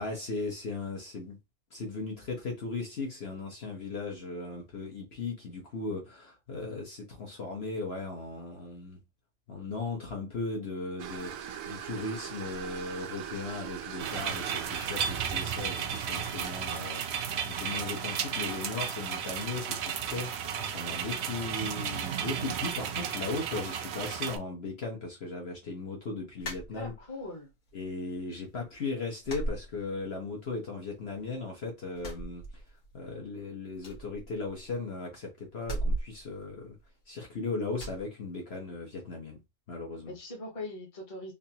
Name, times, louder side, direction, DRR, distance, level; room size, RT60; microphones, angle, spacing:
voice 1, 0.0-1.4 1.7-9.0 9.5-26.9 27.7-32.6 32.9-36.8 37.1-39.4 39.7-40.2, left 3 dB, 50° left, 1.3 m, -37 dB
sound 1, 11.0-16.6, right 9 dB, 80° right, 1.0 m, -42 dB
sound 2, 14.0-24.4, right 8 dB, 60° right, 0.7 m, -34 dB
sound 3, 26.4-27.3 27.7-28.4 28.6-28.8 29.2-30.4 30.7-31.5 31.9-33.1 33.3-33.4 33.8-34.9 35.6-37.3 37.8-38.0, right 1 dB, 80° left, 1.9 m, -37 dB
voice 2, 26.7-27.5 40.1-41.3, left 2 dB, 25° left, 1.2 m, -41 dB
3.9 x 2.8 x 2.9 m
omnidirectional pair, 1.5 m